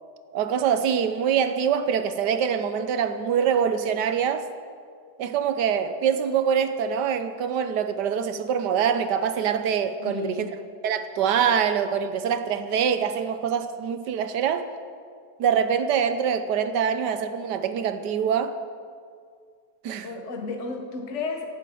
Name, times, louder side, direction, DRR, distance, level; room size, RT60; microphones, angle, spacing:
voice 1, 0.3-4.5 5.2-10.5 10.8-14.7 15.4-18.6 19.8-20.1, right 7 dB, 75° right, 10 dB, 1.4 m, -24 dB
voice 2, 10.0-10.5 20.0-21.5, left 4 dB, 45° left, 3 dB, 1.3 m, -32 dB
12.0 x 8.9 x 8.6 m, 2.1 s
omnidirectional pair, 1.8 m